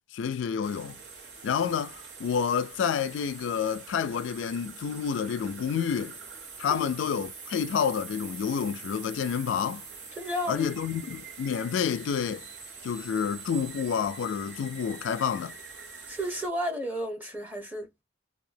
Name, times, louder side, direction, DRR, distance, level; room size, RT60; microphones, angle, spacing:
voice 1, 0.1-1.0 1.4-6.2 6.6-9.8 10.5-12.4 12.8-15.5, left 7 dB, 80° left, 0.3 m, -29 dB
sound 1, 0.6-16.5, right 5 dB, 65° right, 1.0 m, -44 dB
voice 2, 10.1-10.9 16.1-18.0, equal, 10° right, 0.9 m, -33 dB
2.8 x 2.3 x 2.5 m
head